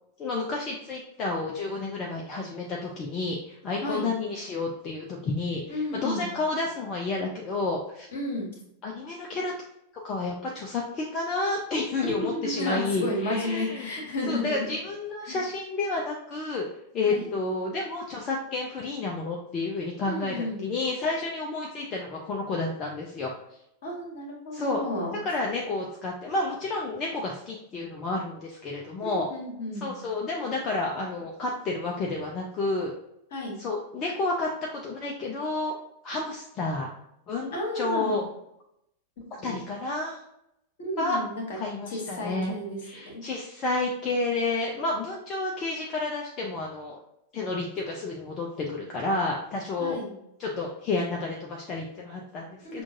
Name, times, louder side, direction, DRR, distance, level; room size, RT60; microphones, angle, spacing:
voice 1, 0.2-8.1 8.8-9.5 9.9-13.9 14.3-16.7 16.9-20.4 20.6-23.3 24.5-24.8 25.2-29.3 29.8-32.9 33.6-35.7 36.0-36.9 37.3-38.2 39.4-40.2 41.0-41.2 41.6-42.5 42.8-47.0 47.3-50.0 50.4-52.8, left 3 dB, 30° left, -1 dB, 0.6 m, -30 dB
voice 2, 5.7-6.3 8.1-8.5 12.0-14.7 15.3-15.4 17.0-17.3 20.0-20.7 23.8-25.2 29.0-29.9 33.3-33.6 37.5-38.2 39.4-39.6 40.8-41.6 41.8-43.3 49.8-50.1 52.6-52.8, left 1 dB, 55° left, -1 dB, 1.5 m, -32 dB
6.0 x 2.5 x 2.6 m, 0.79 s
figure-of-eight pair, 90°, 0 cm